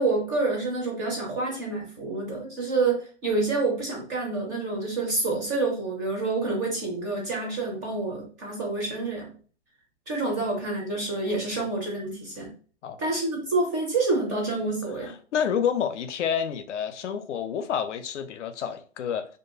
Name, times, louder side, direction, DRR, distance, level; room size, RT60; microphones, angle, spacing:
voice 1, 0.0-9.3 10.1-12.5 13.0-15.1, right 3 dB, 15° right, 0.4 m, -28 dB
voice 2, 15.0-19.3, left 8 dB, 75° left, 0.5 m, -29 dB
2.5 x 2.2 x 2.6 m
hypercardioid pair, 135°, 36 cm